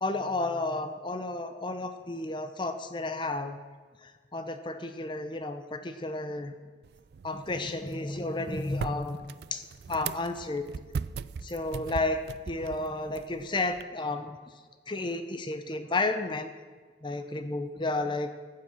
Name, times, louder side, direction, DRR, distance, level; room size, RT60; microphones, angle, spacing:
voice 1, 0.0-3.6 4.0-6.5 7.2-9.2 9.5-9.6 9.9-10.6 11.4-12.2 12.5-14.4 14.9-16.5 17.0-18.3, left 2 dB, 25° left, 9 dB, 0.7 m, -32 dB
sound 1, 6.8-13.8, right 6 dB, 60° right, 0.3 m, -40 dB
14.5 x 7.6 x 6.1 m, 1.5 s
head